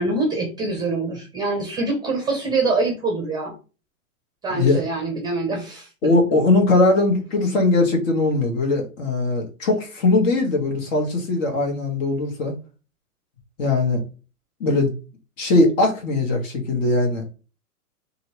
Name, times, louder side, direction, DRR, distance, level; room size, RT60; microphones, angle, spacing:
voice 1, 0.0-3.5 4.4-5.9, right 3 dB, 10° right, 3 dB, 0.6 m, -24 dB
voice 2, 4.5-4.8 6.0-12.5 13.6-14.0 14.6-14.9 15.4-17.3, left 2 dB, 60° left, 3 dB, 1.4 m, -20 dB
2.9 x 2.7 x 2.8 m, 0.34 s
hypercardioid pair, 130°, 44 cm